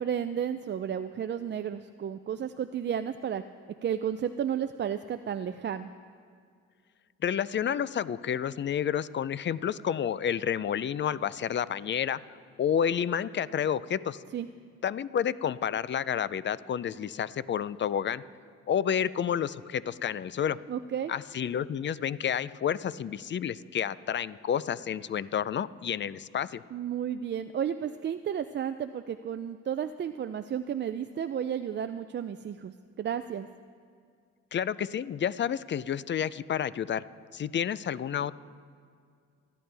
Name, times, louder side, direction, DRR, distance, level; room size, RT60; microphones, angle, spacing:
voice 1, 0.0-3.4 3.8-5.9 14.3-14.5 20.7-21.1 26.7-33.5, right 9 dB, 40° right, 9 dB, 0.4 m, -32 dB
voice 2, 7.2-12.2 12.6-14.2 14.8-18.2 18.7-20.6 21.1-26.6 34.5-37.0 37.3-38.3, left 8 dB, 40° left, 17 dB, 0.5 m, -30 dB
24.5 x 10.5 x 3.4 m, 2.2 s
cardioid pair, 90°, 30 cm